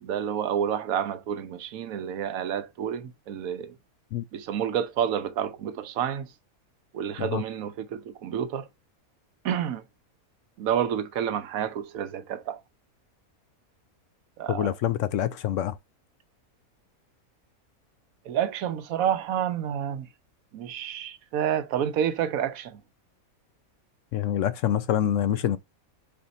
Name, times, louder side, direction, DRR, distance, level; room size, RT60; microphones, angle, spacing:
voice 1, 0.0-3.7 4.3-6.3 6.9-8.7 9.4-9.8 10.6-12.6 14.4-14.7 18.2-20.1 20.5-22.8, right 9 dB, 80° right, 1.1 m, -29 dB
voice 2, 14.5-15.8 24.1-25.6, left 11 dB, 70° left, 0.9 m, -26 dB
5.5 x 4.3 x 4.0 m
omnidirectional pair, 1.5 m